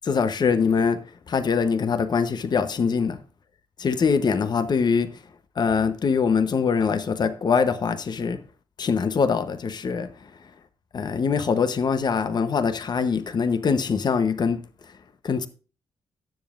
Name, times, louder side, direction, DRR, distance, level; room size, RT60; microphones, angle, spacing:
voice 1, 0.0-3.2 3.8-5.1 5.6-8.4 8.8-10.3 10.9-14.6 15.2-15.5, left 5 dB, 50° left, 0.9 m, -23 dB
17.5 x 7.2 x 2.5 m
cardioid pair, 65°, 9 cm